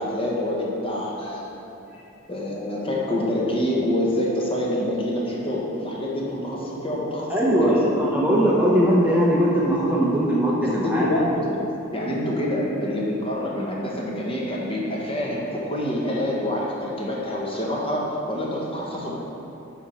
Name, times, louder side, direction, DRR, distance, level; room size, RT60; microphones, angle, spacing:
voice 1, 0.0-1.5 2.3-7.9 10.8-11.6 11.9-19.1, left 1 dB, 25° left, -4 dB, 1.0 m, -26 dB
voice 2, 7.3-11.1, equal, 5° right, -6 dB, 0.7 m, -20 dB
10.5 x 3.5 x 4.3 m, 2.9 s
head